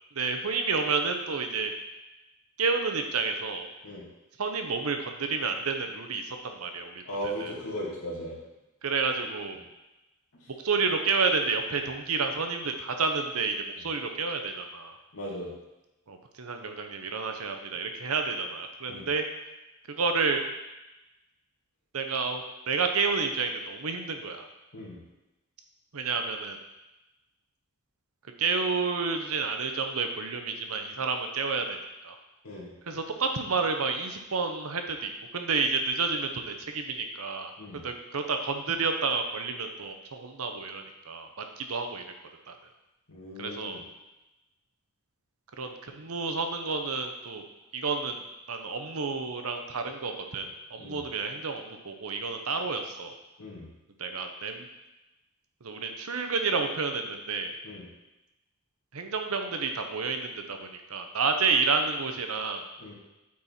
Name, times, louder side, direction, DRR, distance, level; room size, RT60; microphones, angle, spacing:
voice 1, 0.1-1.7 2.6-3.7 4.4-7.0 7.4-7.5 8.8-9.6 10.5-15.0 16.1-19.2 19.9-20.4 21.9-24.5 25.9-26.6 28.4-31.8 32.0-32.2 32.9-42.0 42.5-42.6 43.4-43.8 45.6-47.5 47.7-48.2 48.5-53.1 54.0-54.7 55.6-57.5 58.9-62.6, right 4 dB, 80° right, 5 dB, 0.9 m, -30 dB
voice 2, 7.0-8.4 10.3-10.5 15.1-15.5 18.9-19.1 24.7-25.0 32.4-32.7 37.6-37.8 43.1-43.8 50.8-51.0 53.4-53.7 57.6-57.9 62.8-62.9, equal, 85° left, -5 dB, 2.4 m, -37 dB
8.5 x 4.5 x 4.3 m, 0.99 s
head